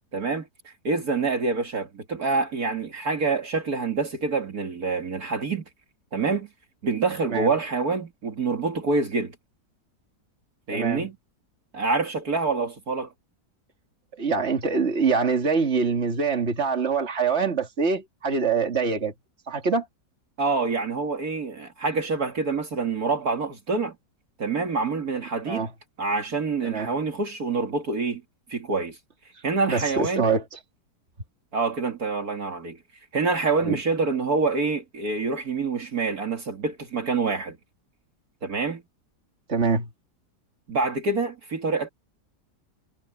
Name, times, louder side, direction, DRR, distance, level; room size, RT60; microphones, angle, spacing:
voice 1, 0.1-5.6 6.1-6.5 6.8-9.3 10.7-11.2 11.7-13.1 20.4-24.0 24.4-25.7 26.0-28.2 28.5-29.0 29.4-30.2 31.5-32.8 33.1-37.6 38.4-38.8 40.7-41.9, right 4 dB, 60° right, 2.6 m, -26 dB
voice 2, 10.7-11.1 14.2-19.1 19.5-19.9 25.5-25.7 26.6-26.9 29.7-30.6 33.6-33.8 39.5-39.9, right 5 dB, 40° right, 2.6 m, -24 dB
omnidirectional pair, 1.9 m